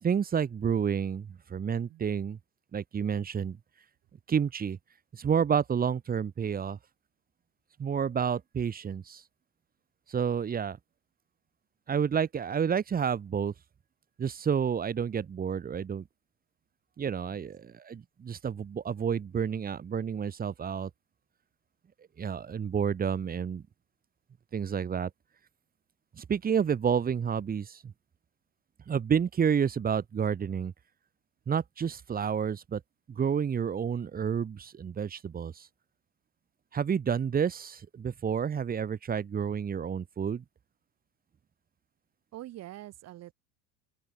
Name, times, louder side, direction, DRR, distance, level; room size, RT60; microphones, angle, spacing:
voice 1, 0.0-2.4 2.7-3.6 4.3-4.8 5.1-6.8 7.8-9.2 10.1-10.8 11.9-13.5 14.2-16.0 17.0-20.9 22.2-23.6 24.5-25.1 26.2-27.9 28.9-30.7 31.5-32.8 33.1-35.7 36.7-40.4, right 7 dB, 25° right, 3.9 m, -30 dB
voice 2, 42.3-43.3, right 14 dB, 50° right, 5.7 m, -45 dB
open air
cardioid pair, 135°, 34 cm